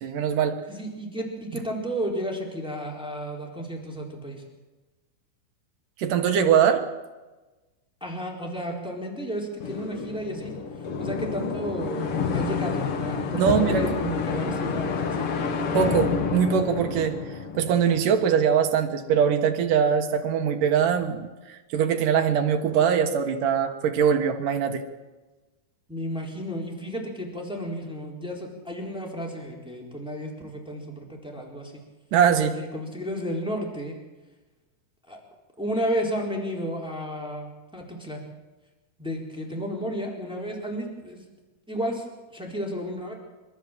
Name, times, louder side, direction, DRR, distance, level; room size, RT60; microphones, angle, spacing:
voice 1, 0.0-0.6 6.0-6.8 13.4-14.1 15.7-17.2 17.5-21.3 21.7-24.9 32.1-32.6, right 7 dB, 65° right, 6 dB, 2.6 m, -22 dB
voice 2, 0.7-4.4 8.0-10.5 11.0-15.3 25.9-31.7 32.5-34.0 35.1-35.2 35.6-37.5 37.7-38.2 39.0-41.2 41.7-43.1, equal, ahead, -1 dB, 3.5 m, -32 dB
sound 1, 9.6-18.4, left 5 dB, 60° left, 1.4 m, -29 dB
29.5 x 13.0 x 7.5 m, 1.2 s
omnidirectional pair, 4.6 m